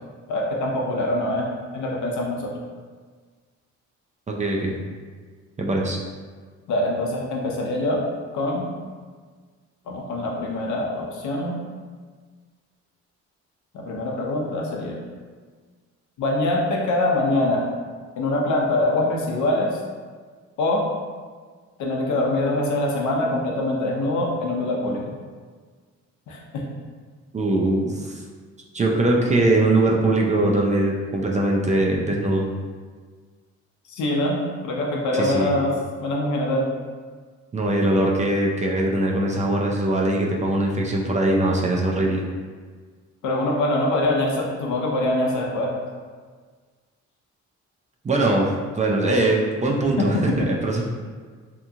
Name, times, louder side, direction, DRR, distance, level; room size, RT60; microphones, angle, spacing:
voice 1, 0.3-2.6 6.7-8.0 8.3-8.7 9.9-11.6 13.7-15.0 16.2-17.7 18.2-19.8 20.6-20.8 21.8-25.0 26.3-26.6 33.9-35.7 36.0-36.7 43.2-45.7 50.0-50.5, left 1 dB, 75° left, -1 dB, 0.7 m, -24 dB
voice 2, 4.3-4.8 5.6-6.0 27.3-28.2 28.7-32.5 35.1-35.6 37.5-42.3 48.0-48.5 48.7-50.8, right 2 dB, 25° right, -1 dB, 0.4 m, -21 dB
2.9 x 2.3 x 2.7 m, 1.6 s
cardioid pair, 90°, 30 cm